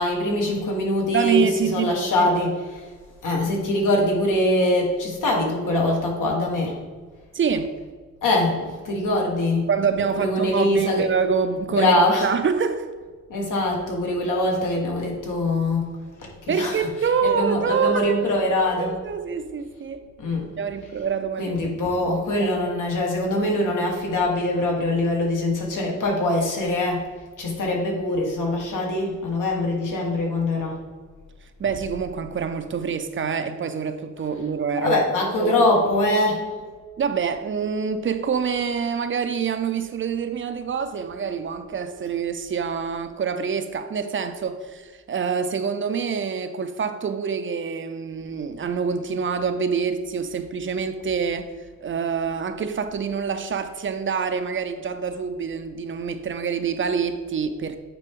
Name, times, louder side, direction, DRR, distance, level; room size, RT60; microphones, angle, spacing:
voice 1, 0.0-2.6 3.2-6.8 8.2-11.0 11.7-12.3 13.3-15.9 16.5-16.9 17.2-18.9 20.2-20.5 21.4-27.1 27.4-30.8 34.8-36.4, left 1 dB, 80° left, -1 dB, 1.6 m, -23 dB
voice 2, 1.1-1.9 2.2-2.3 7.3-7.7 9.7-12.0 12.2-12.9 16.5-18.4 18.8-20.0 20.6-21.6 22.4-22.5 31.6-35.0 35.4-35.6 37.0-51.5 51.8-57.8, right 6 dB, 40° right, 9 dB, 0.4 m, -26 dB
9.1 x 4.4 x 3.6 m, 1.4 s
wide cardioid pair, 155°, 31 cm